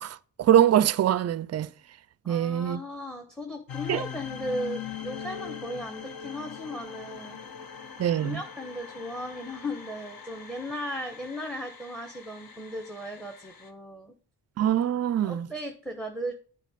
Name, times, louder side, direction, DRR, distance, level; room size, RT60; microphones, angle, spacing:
voice 1, 0.0-1.7 2.3-2.8 3.9-4.0 8.0-8.4 14.6-15.5, right 10 dB, 40° right, 0.4 m, -23 dB
voice 2, 2.2-7.4 7.7-7.8 8.2-14.1 15.2-16.3, equal, ahead, 1.0 m, -36 dB
sound 1, 3.7-13.7, left 7 dB, 55° left, 1.1 m, -42 dB
8.2 x 4.8 x 5.0 m
cardioid pair, 65°, 41 cm